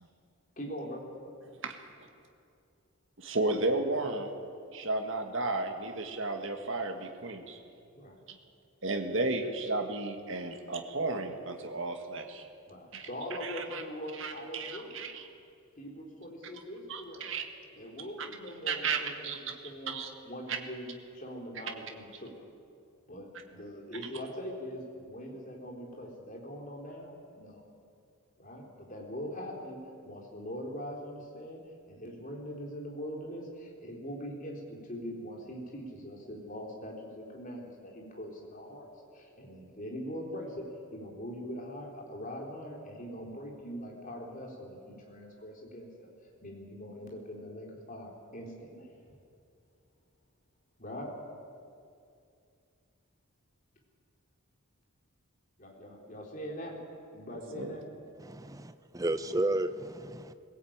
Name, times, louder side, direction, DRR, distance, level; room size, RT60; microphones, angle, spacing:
voice 1, 0.6-1.0 7.0-7.1 7.9-8.1 12.7-15.1 15.8-17.2 17.8-19.3 19.6-19.9 20.2-20.9 21.1-22.3 23.1-27.7 28.4-29.8 30.0-31.6 31.9-38.8 39.1-40.7 40.9-46.1 46.4-48.9 50.8-51.1 55.6-56.8 57.1-57.8 59.5-59.6, equal, 35° left, 0 dB, 3.7 m, -42 dB
voice 2, 3.2-4.3 4.7-7.6 8.3-8.4 8.8-12.5 12.9-13.1 13.4-13.8 14.1-15.2 16.9-17.4 18.7-19.4 19.9-20.1 20.5-20.6 57.3-57.8, right 3 dB, 60° right, 4 dB, 1.7 m, -33 dB
voice 3, 58.2-60.3, right 2 dB, 15° right, 11 dB, 0.6 m, -32 dB
20.5 x 17.0 x 8.8 m, 2.4 s
head